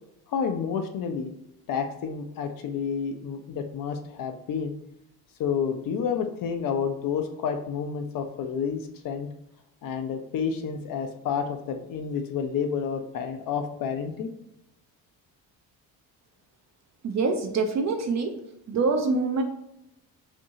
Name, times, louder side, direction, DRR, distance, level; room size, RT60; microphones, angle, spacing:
voice 1, 0.3-1.3 1.7-4.7 5.4-9.3 9.8-14.3, left 6 dB, 45° left, 6 dB, 0.4 m, -30 dB
voice 2, 17.0-18.4 18.7-19.4, right 3 dB, 35° right, 5 dB, 0.4 m, -25 dB
2.6 x 2.5 x 2.7 m, 0.82 s
hypercardioid pair, 45°, 49 cm